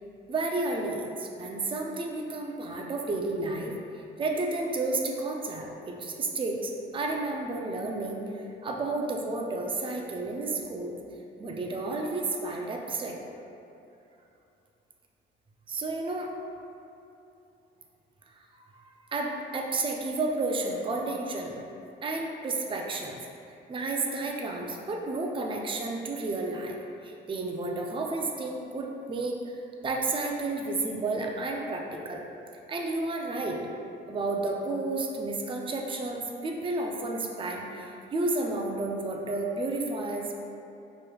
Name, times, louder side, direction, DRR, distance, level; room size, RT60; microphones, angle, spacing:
voice 1, 0.3-3.7 4.2-10.9 11.4-13.2 15.7-16.3 18.3-18.4 19.1-21.6 22.0-23.2 23.7-26.8 27.0-29.4 29.8-32.2 32.7-33.6 34.1-40.3, right 2 dB, 25° right, 1 dB, 0.4 m, -31 dB
4.9 x 3.1 x 2.3 m, 2.8 s
cardioid pair, 90°, 20 cm